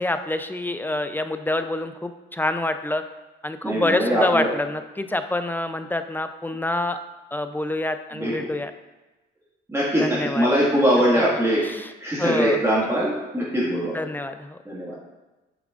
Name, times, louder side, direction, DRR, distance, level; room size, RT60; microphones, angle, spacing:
voice 1, 0.0-3.0 3.4-7.0 7.3-8.7 10.0-10.5 11.6-11.9 12.2-12.6 13.9-14.6, left 2 dB, 10° left, 9 dB, 0.4 m, -26 dB
voice 2, 3.6-4.5 8.1-8.5 9.7-11.6 12.0-14.0 14.6-15.0, equal, 15° right, -7 dB, 1.8 m, -22 dB
8.2 x 7.2 x 2.5 m, 1.1 s
cardioid pair, 90°, 20 cm